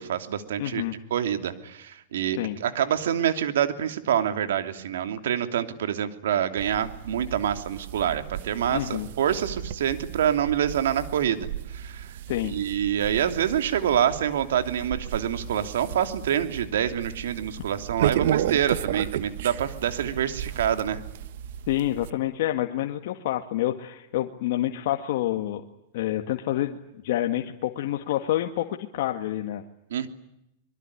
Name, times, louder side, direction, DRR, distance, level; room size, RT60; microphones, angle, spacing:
voice 1, 0.0-0.8 1.1-12.2 12.5-21.0 29.9-30.1, right 9 dB, 85° right, 9 dB, 2.9 m, -26 dB
voice 2, 0.6-0.9 2.4-2.6 8.7-9.1 12.3-12.6 21.7-25.6 25.9-26.8 27.0-29.6, left 13 dB, 65° left, 4 dB, 2.0 m, -28 dB
sound 1, 6.6-22.1, right 11 dB, 70° right, 1.4 m, -34 dB
25.5 x 23.0 x 10.0 m, 0.83 s
supercardioid pair, 145°, 0 cm